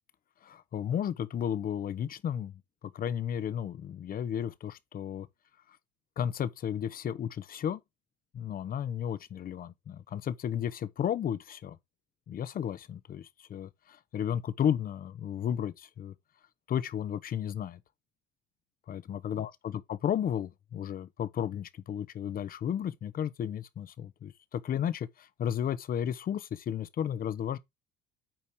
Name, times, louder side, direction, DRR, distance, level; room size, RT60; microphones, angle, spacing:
voice 1, 0.4-5.3 6.2-7.8 8.3-11.8 12.3-16.1 16.7-17.8 18.9-27.6, left 9 dB, 45° left, 1.1 m, -33 dB
9.1 x 4.3 x 4.8 m
supercardioid pair, 85°, 20 cm